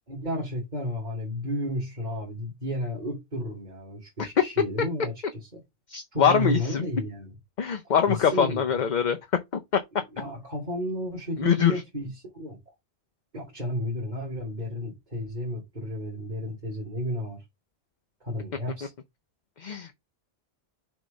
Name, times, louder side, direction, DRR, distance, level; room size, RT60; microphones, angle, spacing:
voice 1, 0.1-5.6 6.1-7.3 8.1-8.7 10.1-12.6 13.3-17.4 18.2-18.9, equal, 40° right, 2.5 m, -32 dB
voice 2, 5.9-6.8 7.6-9.2 11.4-11.8 19.6-19.9, left 7 dB, 50° left, 0.7 m, -23 dB
7.0 x 3.1 x 5.2 m
omnidirectional pair, 1.1 m